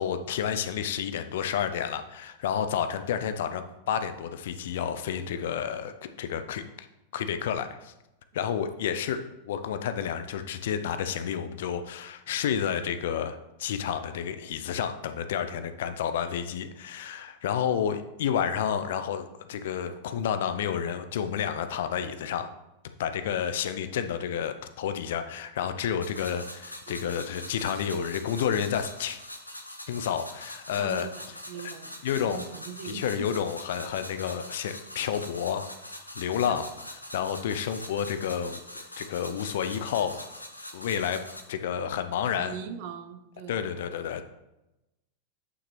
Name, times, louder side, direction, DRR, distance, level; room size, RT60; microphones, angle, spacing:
voice 1, 0.0-6.6 7.1-7.9 8.3-9.2 9.4-22.5 23.0-29.2 29.9-31.1 32.0-32.4 32.8-36.7 37.1-40.2 40.7-41.2 41.5-42.5 43.5-44.2, left 8 dB, 55° left, 9 dB, 0.6 m, -30 dB
sound 1, 26.0-41.4, left 1 dB, 85° left, 0.9 m, -43 dB
voice 2, 27.7-28.1 30.8-33.3 36.4-36.6 42.3-43.7, right 7 dB, 50° right, 9 dB, 0.8 m, -41 dB
9.6 x 5.8 x 3.3 m, 0.94 s
figure-of-eight pair, 90°, 0 cm